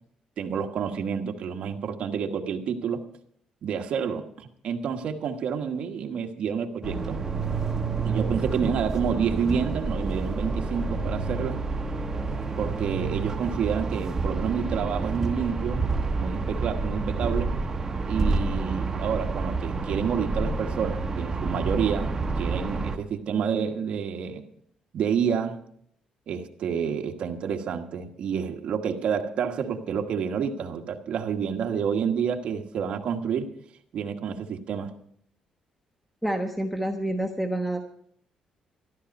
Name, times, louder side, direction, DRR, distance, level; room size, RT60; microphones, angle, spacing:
voice 1, 0.4-3.0 3.6-7.2 8.0-11.6 12.6-15.8 16.1-17.5 18.0-24.4 24.9-25.6 26.3-33.5 33.9-34.9, right 7 dB, 60° right, 4 dB, 1.4 m, -29 dB
sound 1, 6.8-23.0, right 3 dB, 20° right, 1.3 m, -29 dB
voice 2, 36.2-37.9, right 1 dB, 5° left, 4 dB, 1.1 m, -28 dB
13.5 x 12.5 x 5.3 m, 0.66 s
cardioid pair, 135°, 2 cm